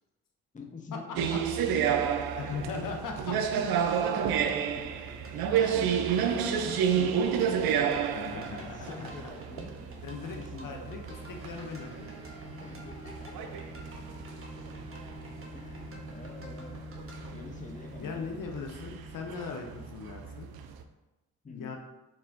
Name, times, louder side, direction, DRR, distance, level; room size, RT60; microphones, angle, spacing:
voice 1, 0.5-2.6 3.1-3.8 4.2-10.7 12.6-13.5 15.5-16.8 17.3-18.6 21.4-21.8, left 4 dB, 20° left, 2 dB, 0.7 m, -46 dB
sound 1, 1.2-20.8, right 8 dB, 65° right, 0.5 m, -31 dB
voice 2, 2.4-3.7 4.1-4.3 8.1-9.1 10.0-12.1 17.2-17.5 18.0-20.5 21.5-21.8, left 4 dB, 55° left, 3 dB, 0.7 m, -39 dB
sound 2, 4.9-17.3, right 2 dB, 35° right, 1.1 m, -52 dB
sound 3, 11.0-20.8, left 2 dB, 85° right, 1.2 m, -48 dB
4.3 x 3.4 x 2.5 m, 1.0 s
supercardioid pair, 50°, 39 cm